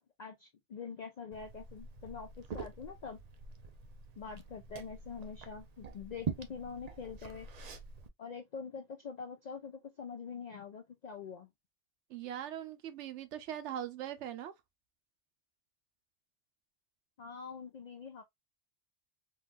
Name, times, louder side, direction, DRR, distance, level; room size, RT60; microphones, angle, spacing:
voice 1, 0.0-3.2 4.2-7.5 8.2-11.5 17.2-18.2, left 5 dB, 55° left, 0.5 m, -45 dB
Liquid, 1.3-8.1, right 5 dB, 50° right, 0.5 m, -45 dB
voice 2, 12.1-14.5, right 10 dB, 90° right, 0.9 m, -41 dB
3.9 x 2.4 x 2.5 m
omnidirectional pair, 1.2 m